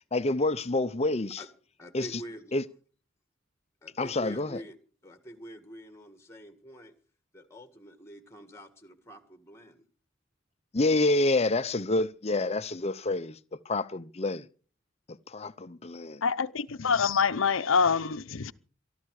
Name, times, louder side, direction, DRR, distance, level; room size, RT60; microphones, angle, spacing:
voice 1, 0.0-1.4 1.9-2.2 2.5-2.6 4.0-4.6 10.7-14.5 15.1-16.2, left 2 dB, 30° left, 0.7 m, -28 dB
voice 2, 1.8-2.5 3.8-4.7 5.0-6.9 7.3-9.8, right 1 dB, 15° left, 1.8 m, -46 dB
voice 3, 16.2-18.5, left 5 dB, 80° left, 0.7 m, -26 dB
23.0 x 13.0 x 4.8 m
head